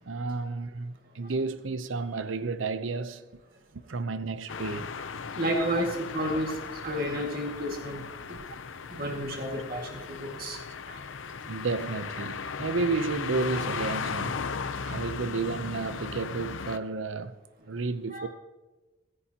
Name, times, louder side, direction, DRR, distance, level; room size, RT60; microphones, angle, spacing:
voice 1, 0.1-3.3 3.7-4.9 5.8-5.9 9.3-9.4 11.5-14.4 14.9-17.3 17.7-18.3, right 3 dB, 90° right, 0.7 m, -32 dB
sound 1, 4.5-16.8, left 5 dB, 90° left, 0.7 m, -37 dB
voice 2, 5.3-8.4 8.9-11.0 14.8-15.0 18.1-18.3, equal, 50° right, 2.1 m, -32 dB
25.0 x 10.5 x 2.9 m
head